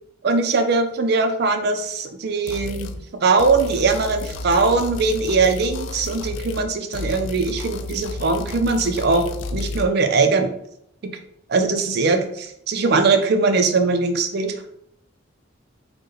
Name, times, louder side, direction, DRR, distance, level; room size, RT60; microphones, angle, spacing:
voice 1, 0.2-2.9 3.2-9.3 9.5-10.5 11.5-14.6, right 4 dB, 55° right, 6 dB, 0.4 m, -20 dB
sound 1, 2.5-3.0 3.4-6.7 6.9-9.9, left 2 dB, 80° left, 0.4 m, -31 dB
4.5 x 2.2 x 3.1 m, 0.75 s
head